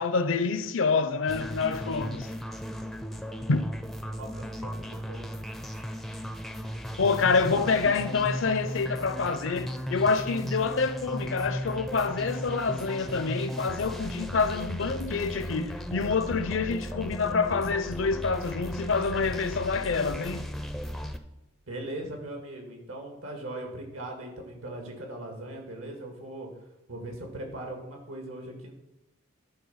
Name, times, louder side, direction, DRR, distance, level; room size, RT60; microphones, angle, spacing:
voice 1, 0.0-2.3 3.5-3.6 7.0-20.5, left 4 dB, 65° left, 0.6 m, -27 dB
sound 1, 1.3-21.2, equal, ahead, 0.4 m, -36 dB
voice 2, 4.1-5.3 7.5-7.9 21.7-26.5 26.9-28.7, right 1 dB, 85° right, 2.0 m, -39 dB
11.0 x 3.7 x 5.6 m
head